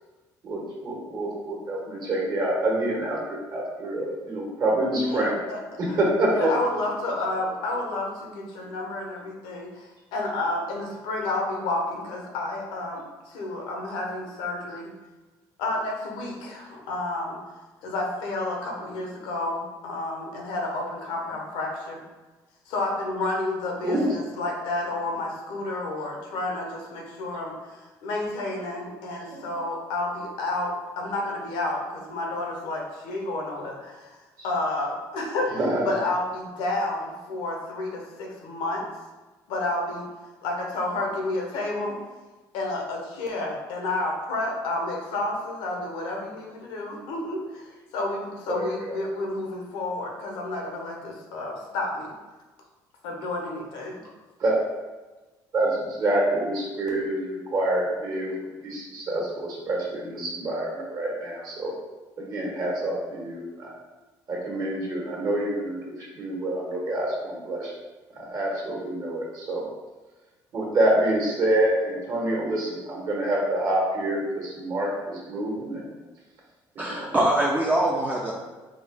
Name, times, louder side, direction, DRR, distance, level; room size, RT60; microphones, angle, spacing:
voice 1, 0.4-5.3 6.0-6.5 23.8-24.1 29.3-29.4 35.5-35.9 48.5-49.0 54.4-54.6 55.5-58.3 58.6-61.7 62.2-63.7 64.3-67.7 68.1-69.6 70.5-76.0 76.7-77.1, right 1 dB, 50° right, -3 dB, 1.3 m, -27 dB
voice 2, 5.0-5.6 5.9-6.0 6.3-14.9 15.6-17.4 17.8-22.0 22.7-34.2 34.4-35.5 35.8-38.8 39.5-40.1 40.4-42.0 42.5-52.1 53.0-54.0, left 2 dB, 85° left, 0 dB, 0.8 m, -30 dB
voice 3, 76.8-78.3, right 1 dB, 20° right, -2 dB, 0.4 m, -23 dB
3.7 x 2.3 x 3.4 m, 1.2 s
cardioid pair, 95°, 8 cm